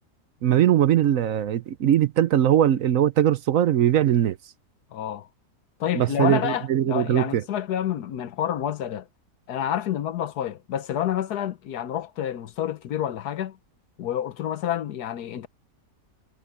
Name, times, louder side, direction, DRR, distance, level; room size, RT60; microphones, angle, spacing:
voice 1, 0.4-4.4 6.0-7.4, right 11 dB, 65° right, 1.0 m, -20 dB
voice 2, 4.9-5.3 5.8-9.1 9.5-13.6 14.0-15.5, left 10 dB, 75° left, 1.4 m, -28 dB
omnidirectional pair, 1.7 m